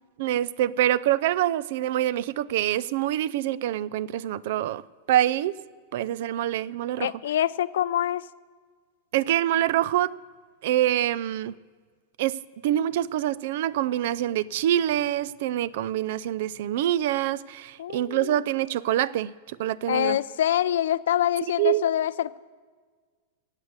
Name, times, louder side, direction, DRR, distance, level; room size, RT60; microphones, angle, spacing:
voice 1, 0.2-4.8 5.1-5.6 5.9-7.1 9.1-10.1 10.6-11.5 12.2-12.4 12.6-20.2 21.6-21.8, right 12 dB, 65° right, 21 dB, 0.4 m, -25 dB
voice 2, 7.0-8.2 17.8-18.4 19.9-22.4, left 11 dB, 85° left, 16 dB, 0.5 m, -25 dB
16.0 x 8.0 x 8.1 m, 1.5 s
supercardioid pair, 150°, 0 cm